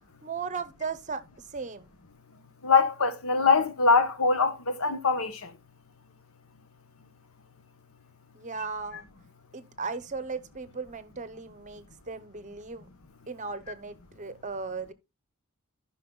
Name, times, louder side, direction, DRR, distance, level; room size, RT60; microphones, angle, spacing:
voice 1, 0.2-1.2 1.5-1.9 8.3-9.1 9.5-12.9 13.3-14.9, right 4 dB, 35° right, 0.8 m, -36 dB
voice 2, 2.6-5.5, left 4 dB, 65° left, 1.0 m, -23 dB
15.0 x 5.7 x 2.2 m
head